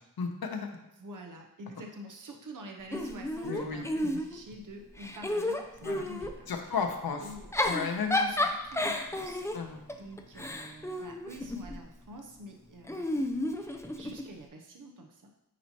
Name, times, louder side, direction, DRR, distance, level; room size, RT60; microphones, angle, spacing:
voice 1, 0.2-0.8 3.4-4.2 5.8-6.0 6.5-7.3 7.6-8.5 9.5-9.8, left 5 dB, 90° left, 4 dB, 0.8 m, -34 dB
voice 2, 1.0-6.5 7.2-7.5 8.3-13.3 13.6-15.3, equal, 60° right, 2 dB, 0.8 m, -47 dB
Giggle / Chuckle chortle, 2.9-4.5 4.9-6.4 7.3-11.8 12.9-14.3, left 1 dB, 10° left, 0.5 m, -32 dB
9.1 x 4.3 x 2.9 m, 0.87 s
wide cardioid pair, 110°, 35 cm